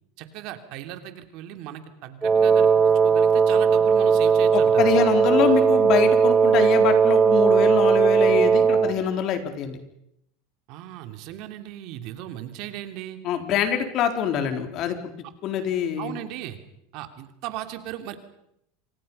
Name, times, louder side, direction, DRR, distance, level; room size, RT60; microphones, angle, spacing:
voice 1, 0.2-4.9 10.7-13.2 16.0-16.6 16.9-18.2, right 12 dB, 60° right, 7 dB, 3.0 m, -37 dB
Wind instrument woodwind instrument, 2.2-9.0, right 6 dB, 20° right, 2.1 m, -18 dB
voice 2, 4.5-9.8 13.2-15.0 15.4-16.1, left 8 dB, 50° left, 6 dB, 4.1 m, -25 dB
28.0 x 25.5 x 5.6 m, 0.77 s
supercardioid pair, 115°, 0 cm